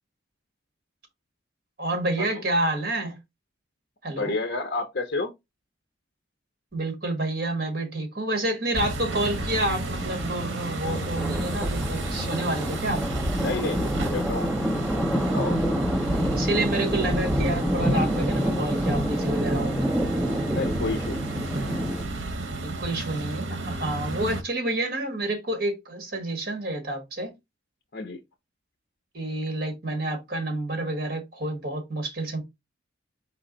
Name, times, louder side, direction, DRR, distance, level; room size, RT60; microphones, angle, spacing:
voice 1, 1.8-3.2 4.0-4.3 6.7-13.0 16.0-19.9 22.6-27.3 29.1-32.4, right 1 dB, 50° right, 1.5 m, -29 dB
voice 2, 4.2-5.3 13.3-14.5 15.3-15.6 20.5-21.3 27.9-28.2, left 3 dB, 50° left, 0.7 m, -30 dB
sound 1, 8.7-24.4, right 2 dB, 75° right, 0.9 m, -32 dB
sound 2, 9.1-22.0, equal, 5° right, 0.7 m, -28 dB
4.4 x 3.0 x 3.8 m
head